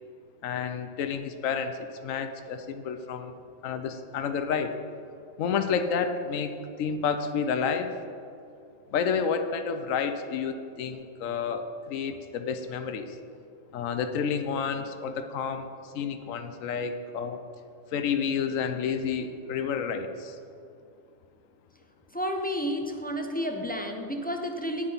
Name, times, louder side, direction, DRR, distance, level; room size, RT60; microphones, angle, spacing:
voice 1, 0.4-3.3 3.6-4.8 5.4-7.9 8.9-13.2 13.7-17.4 17.9-20.4, left 6 dB, 85° left, 8 dB, 1.1 m, -30 dB
voice 2, 22.1-24.9, equal, 15° left, 3 dB, 0.4 m, -31 dB
10.0 x 9.6 x 4.0 m, 2.5 s
omnidirectional pair, 1.3 m